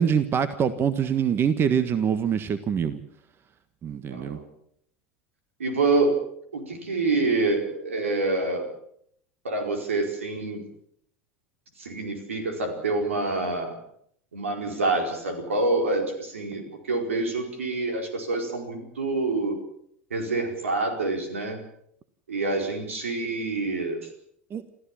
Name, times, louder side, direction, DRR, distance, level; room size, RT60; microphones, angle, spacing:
voice 1, 0.0-3.0 3.8-4.4 24.5-24.6, right 7 dB, 35° right, 12 dB, 1.5 m, -24 dB
voice 2, 4.1-4.4 5.6-6.2 6.5-8.7 9.4-10.6 11.8-13.8 14.3-19.6 20.1-21.6 22.3-24.1, right 3 dB, 80° right, 5 dB, 4.8 m, -27 dB
28.0 x 14.5 x 7.4 m, 0.69 s
hypercardioid pair, 80°, 7 cm